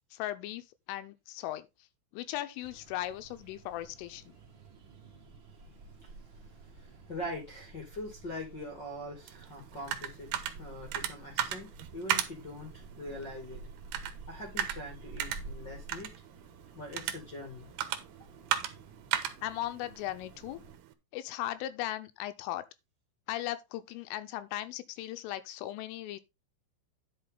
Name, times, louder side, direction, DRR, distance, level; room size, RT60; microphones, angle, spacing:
voice 1, 0.1-1.7 2.1-4.4 19.4-20.6 21.1-22.6 23.3-26.2, left 14 dB, 85° left, 3.4 m, -37 dB
sound 1, 2.6-20.8, right 3 dB, 55° right, 1.3 m, -51 dB
voice 2, 5.7-13.6 14.3-16.1 16.8-17.7, left 1 dB, 30° left, 2.1 m, -43 dB
sound 2, 9.3-20.9, right 11 dB, 75° right, 2.6 m, -37 dB
10.5 x 6.5 x 3.9 m
omnidirectional pair, 5.7 m